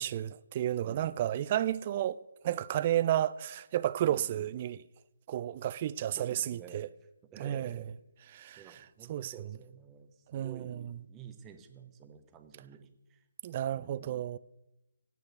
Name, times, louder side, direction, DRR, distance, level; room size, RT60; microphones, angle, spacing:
voice 1, 0.0-2.2 2.4-4.8 5.3-6.9 7.4-7.8 8.3-8.6 9.1-9.3 10.3-10.9 13.4-14.4, right 12 dB, 30° right, 0.3 m, -32 dB
voice 2, 0.8-1.3 4.1-4.5 6.0-6.8 7.3-7.9 8.6-13.3 13.7-14.3, right 8 dB, 15° right, 0.9 m, -51 dB
9.5 x 8.0 x 7.9 m
figure-of-eight pair, 145°, 0 cm